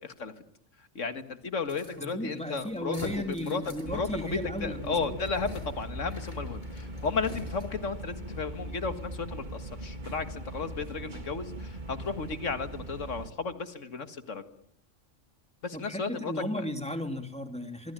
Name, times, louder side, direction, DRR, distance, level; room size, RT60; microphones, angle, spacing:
voice 1, 0.0-0.3 1.0-14.4 15.6-16.7, left 4 dB, 85° left, 10 dB, 2.1 m, -34 dB
sound 1, 1.6-8.0, equal, 40° left, 7.5 m, -47 dB
voice 2, 2.0-5.2 15.7-17.9, left 1 dB, 5° left, 6 dB, 2.8 m, -35 dB
sound 2, 3.8-13.3, right 1 dB, 40° right, 1.9 m, -40 dB
26.0 x 23.5 x 9.0 m, 0.69 s
omnidirectional pair, 1.3 m